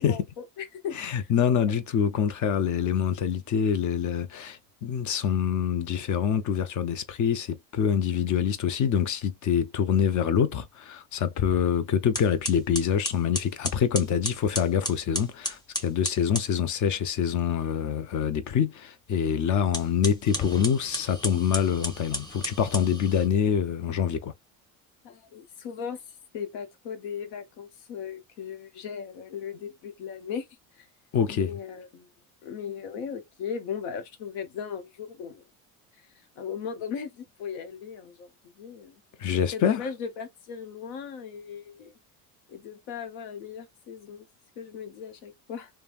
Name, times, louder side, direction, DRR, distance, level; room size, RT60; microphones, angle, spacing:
voice 1, 0.0-1.3 19.3-19.4 25.0-26.0 26.3-30.5 30.8-30.9 31.3-32.1 32.4-35.4 36.4-38.3 38.6-39.0 39.5-41.9 42.5-44.3 44.6-45.7, left 7 dB, 70° left, 1.0 m, -37 dB
voice 2, 1.0-24.3 31.1-31.5 39.2-39.8, left 8 dB, 40° left, 0.7 m, -25 dB
sound 1, 11.6-11.7 12.1-16.5 19.6-23.3, equal, 10° left, 1.0 m, -34 dB
3.2 x 2.2 x 2.4 m
hypercardioid pair, 75°, 44 cm